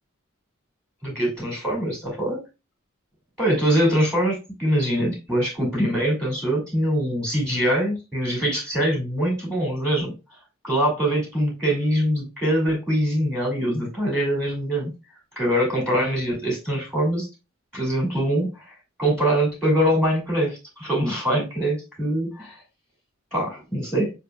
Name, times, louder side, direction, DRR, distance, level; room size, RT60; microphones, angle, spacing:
voice 1, 1.0-2.4 3.4-10.1 10.6-14.9 15.4-17.3 17.7-18.6 19.0-22.6 23.3-24.1, equal, 5° left, -3 dB, 2.2 m, -23 dB
6.8 x 2.7 x 2.2 m, 0.27 s
head